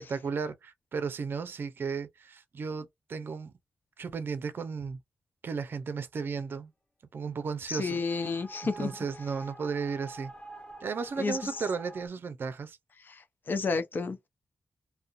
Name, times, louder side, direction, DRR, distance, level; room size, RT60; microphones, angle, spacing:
voice 1, 0.0-3.5 4.0-5.0 5.4-6.7 7.1-8.0 8.6-10.3 10.8-12.8, right 5 dB, 65° right, 0.5 m, -34 dB
voice 2, 7.7-9.0 11.2-11.5 13.0-14.2, left 4 dB, 55° left, 0.7 m, -31 dB
sound 1, 7.7-12.1, right 2 dB, 25° left, 0.9 m, -47 dB
2.3 x 2.1 x 2.5 m
cardioid pair, 55°, 4 cm